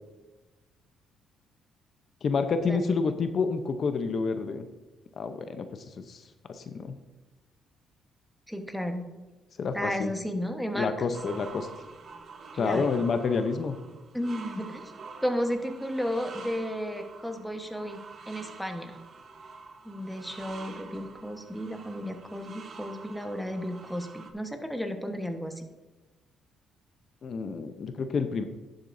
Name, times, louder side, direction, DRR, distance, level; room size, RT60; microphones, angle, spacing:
voice 1, 2.2-4.6 5.2-6.2 6.5-7.0 9.6-10.1 10.7-11.7 12.6-13.8 27.2-28.4, left 4 dB, 55° left, 8 dB, 0.7 m, -29 dB
voice 2, 8.5-9.1 9.7-10.9 12.5-12.9 14.1-14.9 15.2-18.0 18.3-19.0 19.8-25.6, equal, ahead, 5 dB, 1.2 m, -33 dB
sound 1, 11.1-24.3, right 4 dB, 50° right, 1.1 m, -46 dB
11.0 x 7.9 x 2.7 m, 1.1 s
cardioid pair, 90°, 0 cm